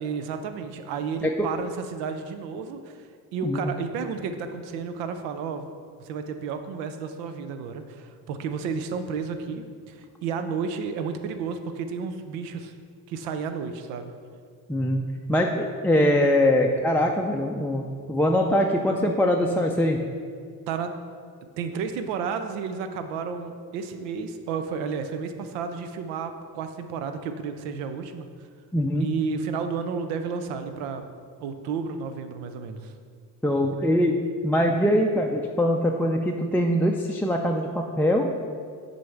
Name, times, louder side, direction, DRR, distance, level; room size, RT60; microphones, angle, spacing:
voice 1, 0.0-3.1 3.3-5.7 6.0-12.7 13.1-14.1 20.7-20.9 21.6-28.3 29.0-31.1 31.4-32.9, right 5 dB, 80° right, 8 dB, 0.6 m, -32 dB
voice 2, 14.7-15.0 15.3-17.8 18.1-20.0 28.7-29.1 33.4-34.2 34.4-38.3, left 1 dB, 5° left, 0 dB, 0.4 m, -22 dB
6.2 x 4.1 x 4.5 m, 2.1 s
hypercardioid pair, 40°, 47 cm